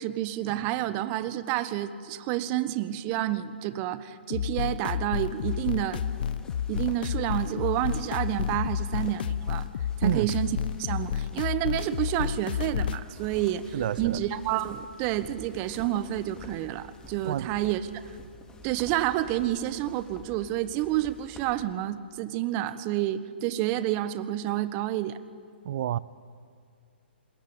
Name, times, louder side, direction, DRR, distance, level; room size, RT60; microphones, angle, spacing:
voice 1, 0.0-6.0 6.7-9.7 10.0-10.5 10.8-17.8 18.6-25.2, right 13 dB, 30° right, 13 dB, 1.2 m, -29 dB
sound 1, 4.3-13.0, left 9 dB, 55° left, 0.6 m, -30 dB
sound 2, 5.1-21.6, left 1 dB, 10° left, 2.5 m, -48 dB
voice 2, 13.7-14.2 17.2-17.5 25.6-26.0, right 11 dB, 50° right, 20 dB, 0.7 m, -28 dB
26.0 x 21.0 x 8.9 m, 2.3 s
hypercardioid pair, 130°, 6 cm